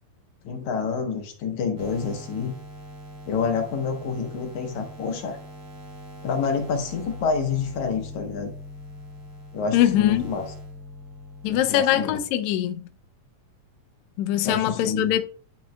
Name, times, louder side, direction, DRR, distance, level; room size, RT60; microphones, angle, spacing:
voice 1, 0.4-2.5 3.3-5.4 6.2-8.5 9.5-10.4 11.5-12.2 14.4-15.1, left 5 dB, 70° left, 2.0 m, -28 dB
sound 1, 1.8-11.7, left 1 dB, 60° right, 3.8 m, -41 dB
voice 2, 9.7-10.3 11.4-12.9 14.2-15.2, left 12 dB, 90° left, 1.6 m, -22 dB
10.0 x 5.1 x 2.2 m
omnidirectional pair, 3.9 m